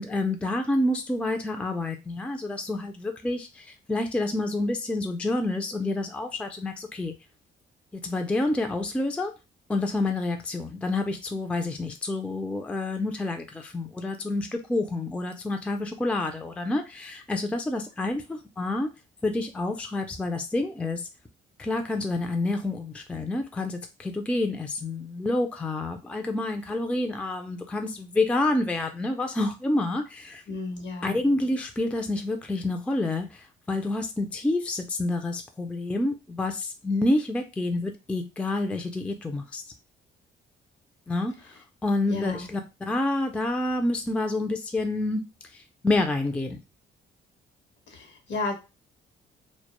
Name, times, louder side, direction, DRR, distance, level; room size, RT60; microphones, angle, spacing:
voice 1, 0.0-7.1 7.9-9.3 9.7-18.9 19.2-21.1 21.6-30.4 31.0-39.6 41.1-41.4 41.8-45.2 45.5-46.6, left 2 dB, 5° left, 0.3 m, -28 dB
voice 2, 30.5-31.2 42.1-42.5 47.9-48.5, left 3 dB, 65° left, 0.9 m, -33 dB
2.1 x 2.1 x 2.9 m
cardioid pair, 90°, 20 cm